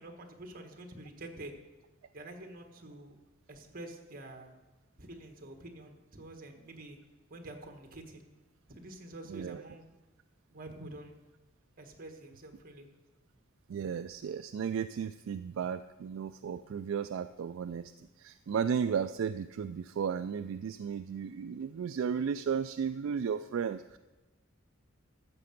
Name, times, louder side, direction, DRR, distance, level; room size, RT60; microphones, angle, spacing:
voice 1, 0.0-1.5 2.1-3.1 3.5-4.5 5.0-7.0 7.3-8.2 8.7-9.9 10.5-11.2 11.8-12.9, right 1 dB, 45° right, 4 dB, 1.6 m, -47 dB
voice 2, 9.3-9.6 13.7-24.0, right 7 dB, 70° right, 10 dB, 0.3 m, -34 dB
13.5 x 7.7 x 5.9 m, 1.1 s
head